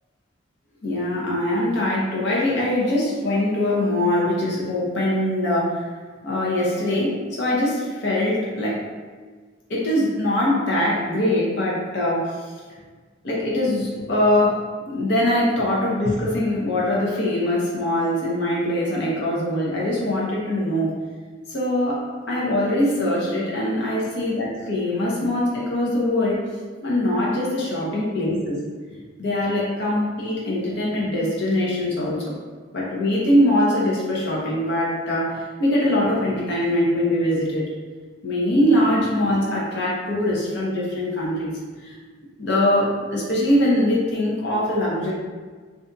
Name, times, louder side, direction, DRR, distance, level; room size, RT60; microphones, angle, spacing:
voice 1, 0.8-5.8 6.2-8.8 9.7-12.3 13.2-20.9 21.5-26.4 26.8-28.6 29.2-32.2 32.7-37.7 38.2-41.5 41.8-41.9 42.4-45.1, left 1 dB, 65° left, -5 dB, 0.8 m, -22 dB
2.6 x 2.3 x 2.6 m, 1.5 s
head